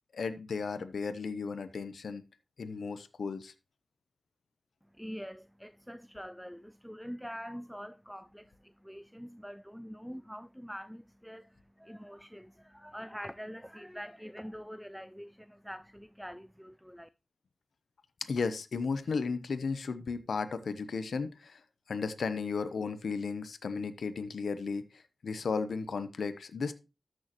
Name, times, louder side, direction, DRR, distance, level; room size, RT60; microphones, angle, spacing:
voice 1, 0.1-2.2 2.6-3.5 18.2-21.6 21.9-26.7, left 5 dB, 85° left, 0.8 m, -34 dB
voice 2, 4.9-17.1, equal, ahead, 0.4 m, -45 dB
13.0 x 6.3 x 3.0 m
cardioid pair, 55°, 0 cm